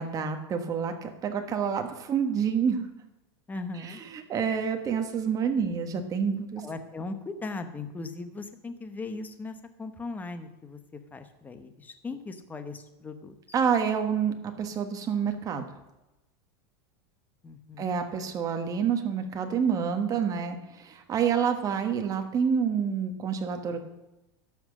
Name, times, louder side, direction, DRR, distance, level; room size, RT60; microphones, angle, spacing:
voice 1, 0.0-2.8 3.8-6.6 13.5-15.6 17.8-23.8, right 7 dB, 25° right, 6 dB, 1.3 m, -28 dB
voice 2, 3.5-4.0 6.6-13.3 17.4-18.0, left 3 dB, 15° left, 8 dB, 0.9 m, -38 dB
12.5 x 5.9 x 6.5 m, 0.99 s
supercardioid pair, 145°, 13 cm